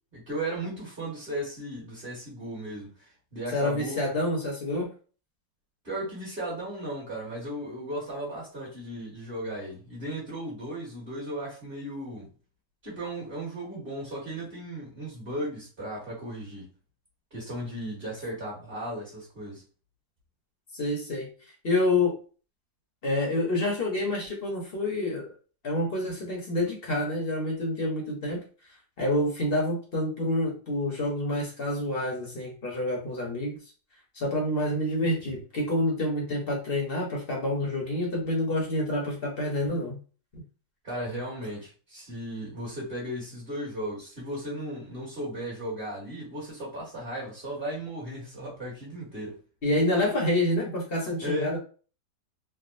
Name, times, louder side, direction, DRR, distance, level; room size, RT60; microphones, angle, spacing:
voice 1, 0.1-4.1 5.8-12.3 12.8-16.7 17.3-19.6 40.8-49.4 51.2-51.5, right 1 dB, 30° right, 1.7 m, -36 dB
voice 2, 3.5-4.9 20.7-21.3 21.6-22.1 23.0-25.3 25.6-28.4 29.0-33.6 34.1-40.0 49.6-51.6, left 1 dB, 45° left, 0.9 m, -28 dB
3.5 x 2.4 x 2.5 m
omnidirectional pair, 1.8 m